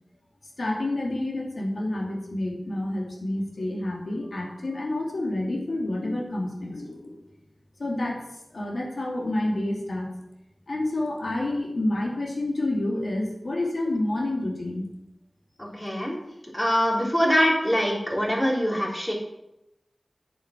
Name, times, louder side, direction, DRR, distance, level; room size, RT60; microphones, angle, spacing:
voice 1, 0.6-7.2 7.8-8.2 8.5-10.1 10.7-14.8, left 1 dB, 85° left, -1 dB, 2.6 m, -29 dB
voice 2, 15.6-16.2 16.5-19.1, equal, 20° left, -2 dB, 3.7 m, -23 dB
9.8 x 8.2 x 5.9 m, 0.86 s
wide cardioid pair, 65°, 0 cm